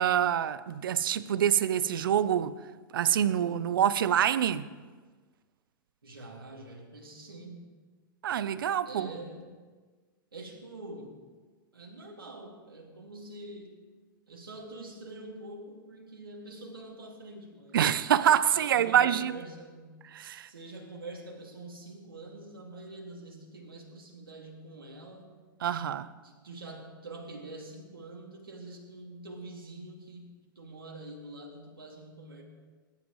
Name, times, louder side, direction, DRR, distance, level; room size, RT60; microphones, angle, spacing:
voice 1, 0.0-2.5 2.9-4.7 8.2-9.1 17.7-19.3 20.1-20.5 25.6-26.1, right 10 dB, 70° right, 0.7 m, -26 dB
voice 2, 6.0-7.7 8.8-9.6 10.3-11.2 11.7-13.8 14.3-18.0 18.5-20.0 20.5-25.3 26.2-32.4, right 2 dB, 90° right, 2.6 m, -45 dB
21.0 x 11.5 x 3.2 m
hypercardioid pair, 110°, 12 cm